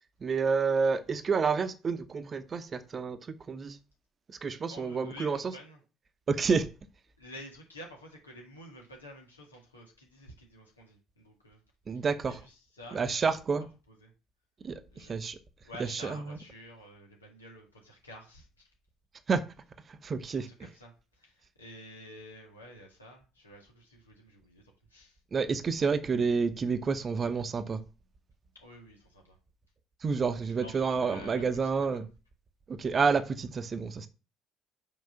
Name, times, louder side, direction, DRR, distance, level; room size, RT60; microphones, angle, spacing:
voice 1, 0.2-3.8 4.3-5.4 6.3-6.7 11.9-12.3 12.9-13.7 14.6-15.4 15.8-16.4 19.3-19.4 19.9-20.5 25.3-27.8 30.0-32.1 32.7-34.1, right 5 dB, 35° right, 0.9 m, -29 dB
voice 2, 4.7-5.8 7.2-11.6 11.9-13.0 13.3-13.4 13.9-14.1 14.9-15.2 15.6-18.7 20.3-25.2 28.5-29.4 30.5-32.0, left 1 dB, 85° left, 1.9 m, -50 dB
5.9 x 4.8 x 5.6 m
figure-of-eight pair, 55°, 0 cm